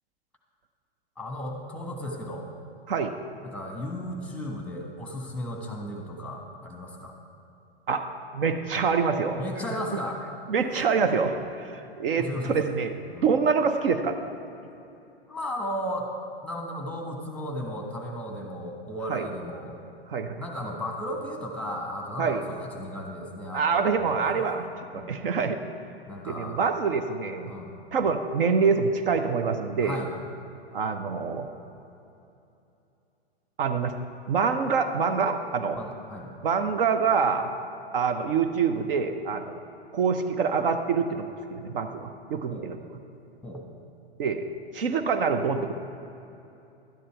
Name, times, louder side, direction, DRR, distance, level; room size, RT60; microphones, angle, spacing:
voice 1, 1.2-2.4 3.4-7.1 9.4-10.2 12.1-12.6 13.1-13.3 15.3-16.1 16.4-19.8 20.3-24.5 24.9-25.2 26.1-26.6 27.5-27.7 29.8-30.1 35.7-36.3 42.5-42.7 43.4-43.7, equal, 5° left, 2 dB, 1.4 m, -35 dB
voice 2, 8.3-9.4 10.5-12.9 13.2-14.2 19.1-19.3 20.1-20.4 22.2-22.5 23.5-24.7 24.9-25.6 26.2-27.5 27.9-30.0 30.7-31.5 33.6-34.0 34.3-35.8 36.4-37.5 37.9-39.5 39.9-42.8 44.2-44.4 44.7-45.7, right 5 dB, 60° right, 7 dB, 0.8 m, -25 dB
12.0 x 10.0 x 4.6 m, 2.8 s
figure-of-eight pair, 105°, 32 cm